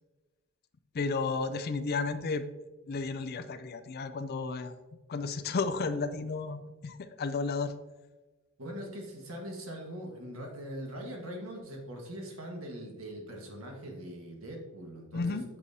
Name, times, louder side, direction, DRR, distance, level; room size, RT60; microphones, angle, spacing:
voice 1, 0.9-2.5 2.9-4.7 5.1-7.7 15.1-15.4, left 4 dB, 45° left, 11 dB, 0.4 m, -33 dB
voice 2, 8.6-15.4, equal, 75° right, 1 dB, 1.6 m, -42 dB
8.2 x 6.1 x 2.8 m, 1.2 s
head